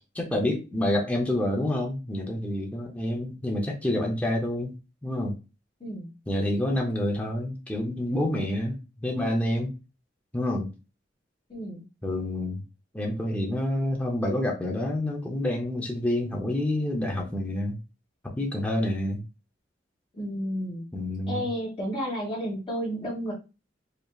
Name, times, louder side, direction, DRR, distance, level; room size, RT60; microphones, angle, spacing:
voice 1, 0.1-5.4 6.3-9.7 10.3-10.7 12.0-12.6 12.9-17.8 18.2-19.2 20.9-21.4, left 1 dB, 10° left, -1 dB, 0.7 m, -28 dB
voice 2, 5.8-6.1 11.5-11.8 20.1-20.9 21.3-23.3, equal, 30° left, -5 dB, 1.7 m, -32 dB
5.0 x 2.9 x 2.4 m, 0.29 s
head